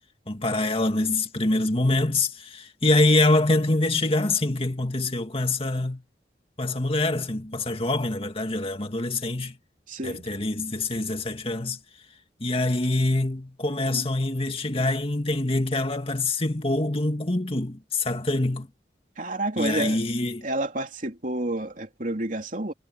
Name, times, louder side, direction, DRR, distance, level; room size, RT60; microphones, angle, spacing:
voice 1, 0.3-6.0 6.6-9.6 10.0-11.8 12.4-18.7 19.6-20.5, left 2 dB, 35° left, 2.2 m, -25 dB
voice 2, 9.9-10.3 13.9-14.1 19.2-20.0 20.4-22.7, right 1 dB, 50° right, 3.1 m, -29 dB
head